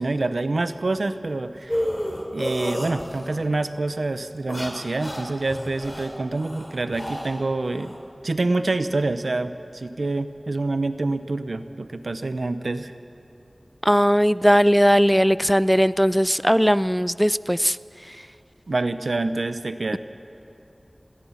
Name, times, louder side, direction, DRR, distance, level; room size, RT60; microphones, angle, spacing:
voice 1, 0.0-1.8 2.3-7.9 8.2-12.9 18.7-20.0, right 2 dB, 90° right, 11 dB, 0.8 m, -26 dB
sound 1, 1.7-3.4 4.3-8.0, equal, 15° left, 3.0 m, -31 dB
voice 2, 13.8-17.8 18.1-18.2, equal, ahead, 17 dB, 0.4 m, -18 dB
21.0 x 17.0 x 7.2 m, 2.8 s
wide cardioid pair, 45°, 0 cm